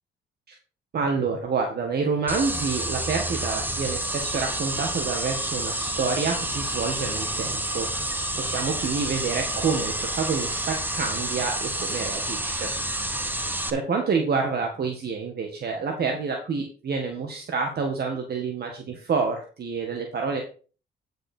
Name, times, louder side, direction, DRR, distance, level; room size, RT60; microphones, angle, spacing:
voice 1, 0.9-12.7 13.2-20.4, right 5 dB, 55° right, 2 dB, 1.8 m, -28 dB
sound 1, 2.3-13.7, right 1 dB, 10° right, 1.3 m, -29 dB
9.8 x 6.5 x 4.6 m, 0.38 s
cardioid pair, 90°, 20 cm